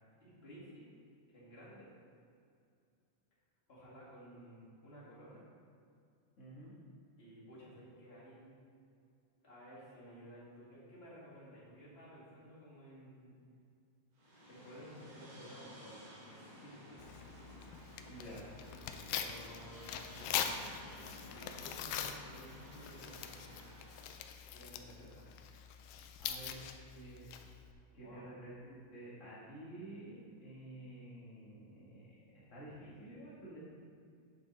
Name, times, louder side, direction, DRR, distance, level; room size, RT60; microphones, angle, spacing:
voice 1, 0.2-0.9 1.3-1.9 3.7-5.4 7.2-8.6 9.4-13.3 14.5-17.0 19.1-23.6 24.5-25.4 28.0-28.3, equal, 25° left, -8 dB, 1.5 m, -55 dB
voice 2, 6.4-6.8 18.1-18.5 25.9-26.6 26.9-27.3 27.9-32.0 32.3-33.6, right 1 dB, 55° left, -9 dB, 0.8 m, -50 dB
sound 1, 14.1-24.3, equal, 65° right, 3.6 m, -54 dB
Tearing, 17.0-27.7, left 8 dB, 80° left, 1.9 m, -43 dB
9.5 x 6.4 x 4.0 m, 2.4 s
omnidirectional pair, 4.2 m